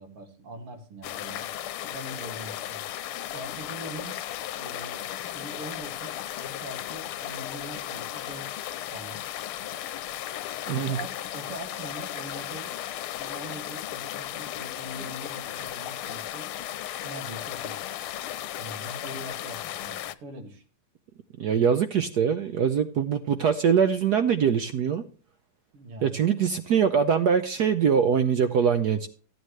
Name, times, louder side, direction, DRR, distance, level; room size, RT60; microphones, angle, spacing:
voice 1, 0.0-1.5 1.8-2.8 3.3-4.2 4.6-8.5 8.9-9.2 10.7-12.8 13.2-16.5 17.0-17.8 18.6-20.6 25.7-26.2, right 1 dB, 90° right, 4 dB, 3.0 m, -42 dB
sound 1, 1.0-20.1, left 12 dB, 80° left, 1.5 m, -35 dB
voice 2, 10.7-11.0 21.4-25.0 26.0-29.1, right 7 dB, 70° right, 9 dB, 1.0 m, -23 dB
14.5 x 9.2 x 3.2 m, 0.39 s
omnidirectional pair, 2.4 m